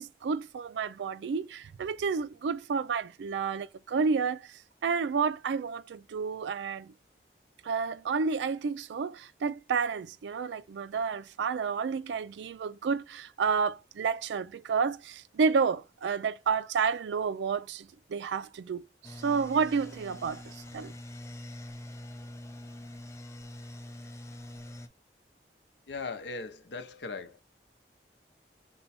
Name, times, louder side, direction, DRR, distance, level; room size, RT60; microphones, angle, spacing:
voice 1, 0.0-4.5 4.8-6.9 7.6-20.9, right 5 dB, 85° right, 0.3 m, -30 dB
sound 1, 19.0-24.9, left 1 dB, 15° left, 0.4 m, -44 dB
voice 2, 25.9-27.4, left 4 dB, 80° left, 0.6 m, -39 dB
5.4 x 2.2 x 4.1 m
head